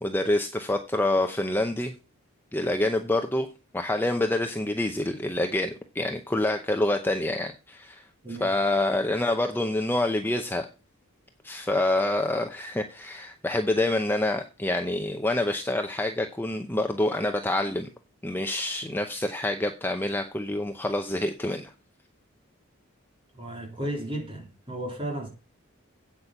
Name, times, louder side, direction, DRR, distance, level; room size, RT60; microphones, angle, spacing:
voice 1, 0.0-1.9 2.5-3.5 3.7-8.0 8.4-10.7 11.4-17.9 18.2-21.7, left 1 dB, 10° left, 0.7 m, -27 dB
voice 2, 23.3-25.3, right 1 dB, 25° right, 3.5 m, -34 dB
8.4 x 8.3 x 5.8 m
head